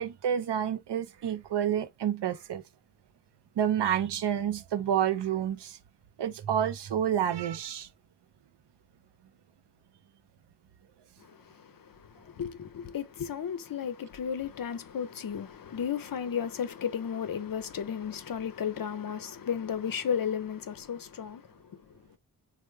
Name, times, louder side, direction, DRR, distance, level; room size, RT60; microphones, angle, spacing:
voice 1, 0.0-2.6 3.6-5.8 6.2-7.9, right 9 dB, 75° right, 0.5 m, -29 dB
voice 2, 11.2-22.2, left 8 dB, 55° left, 0.5 m, -34 dB
3.2 x 2.1 x 3.1 m
cardioid pair, 40°, 42 cm